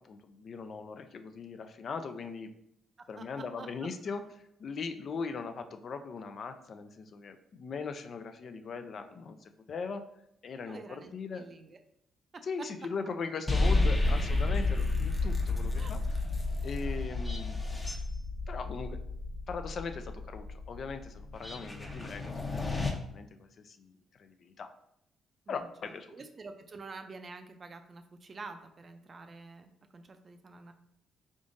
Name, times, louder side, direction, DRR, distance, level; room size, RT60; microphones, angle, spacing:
voice 1, 0.0-2.5 3.1-10.0 10.4-11.5 12.4-16.2 16.6-17.6 18.5-19.0 19.5-22.7 23.1-23.9 24.2-24.7 25.5-26.1, left 5 dB, 55° left, 8 dB, 0.4 m, -40 dB
voice 2, 3.0-3.7 10.7-11.8 12.3-12.4 15.7-16.0 21.6-22.1 25.5-30.7, right 3 dB, 40° right, 7 dB, 0.4 m, -48 dB
sound 1, 13.5-22.9, left 2 dB, 20° left, 0.7 m, -31 dB
3.7 x 3.6 x 2.5 m, 0.76 s
cardioid pair, 90°, 0 cm